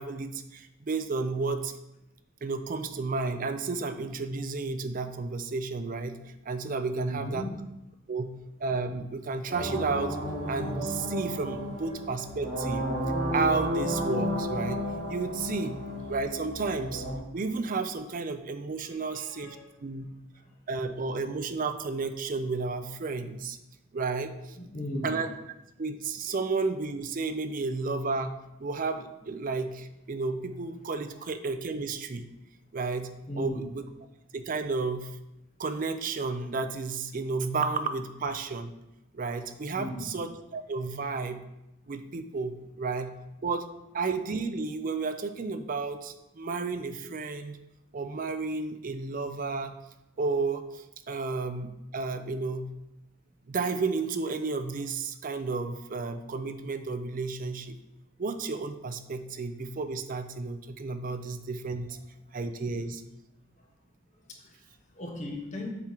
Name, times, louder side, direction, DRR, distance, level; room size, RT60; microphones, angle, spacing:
voice 1, 0.0-1.7 2.4-7.4 8.1-8.3 8.6-10.2 10.5-12.9 13.3-15.8 16.1-17.0 17.3-20.1 20.7-23.6 23.9-24.6 25.0-25.3 25.8-28.3 28.6-32.2 32.7-33.1 33.4-33.8 34.3-35.1 35.6-38.7 39.1-41.4 41.9-43.1 43.4-43.7 43.9-47.6 47.9-49.7 50.2-52.7 53.5-57.8 58.2-62.0 62.3-63.0, right 4 dB, 40° right, 9 dB, 0.4 m, -32 dB
voice 2, 6.9-7.6 18.8-19.7 20.1-20.5 24.6-25.2 33.3-33.7 39.7-40.1 62.3-62.4 64.1-65.7, left 1 dB, 35° left, 1 dB, 1.1 m, -38 dB
sound 1, 9.5-17.2, equal, 60° right, 1.9 m, -32 dB
7.4 x 3.7 x 4.5 m, 0.92 s
head